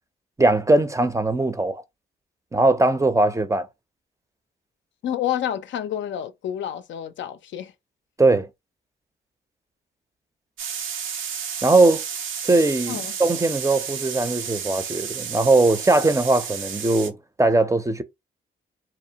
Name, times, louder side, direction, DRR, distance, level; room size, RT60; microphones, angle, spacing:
voice 1, 0.4-1.8 2.5-3.7 8.2-8.5 11.6-12.0 12.5-18.0, right 2 dB, 15° right, 0.5 m, -20 dB
voice 2, 5.0-7.7 12.9-13.2, left 10 dB, 70° left, 0.4 m, -29 dB
sound 1, 10.6-17.1, right 7 dB, 85° right, 0.5 m, -32 dB
2.6 x 2.0 x 2.8 m
supercardioid pair, 50°, 20 cm